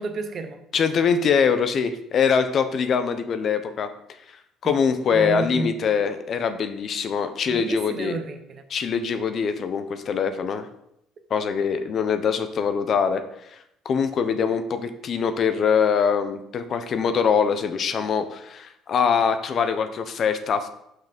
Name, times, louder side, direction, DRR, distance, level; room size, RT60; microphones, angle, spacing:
voice 1, 0.0-0.6 4.6-4.8 5.1-6.0 7.5-8.6, right 3 dB, 50° right, 8 dB, 0.9 m, -31 dB
voice 2, 0.7-3.9 4.6-8.1 8.7-10.7 11.3-13.2 13.8-20.7, left 6 dB, 50° left, 9 dB, 0.8 m, -23 dB
5.7 x 5.7 x 5.2 m, 0.78 s
supercardioid pair, 90°, 0 cm